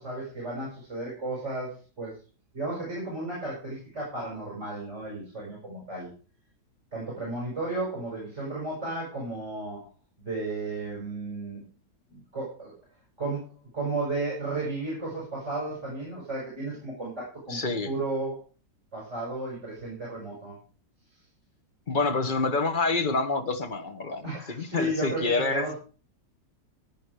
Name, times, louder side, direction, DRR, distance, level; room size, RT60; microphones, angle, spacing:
voice 1, 0.0-2.2 2.5-6.1 6.9-9.9 10.2-11.7 12.1-12.7 13.2-17.6 17.8-18.4 18.9-20.6 24.2-25.8, right 2 dB, 40° right, 7.5 m, -33 dB
voice 2, 17.5-17.9 21.9-25.7, left 3 dB, 30° left, 1.4 m, -27 dB
17.0 x 8.8 x 5.0 m
omnidirectional pair, 1.9 m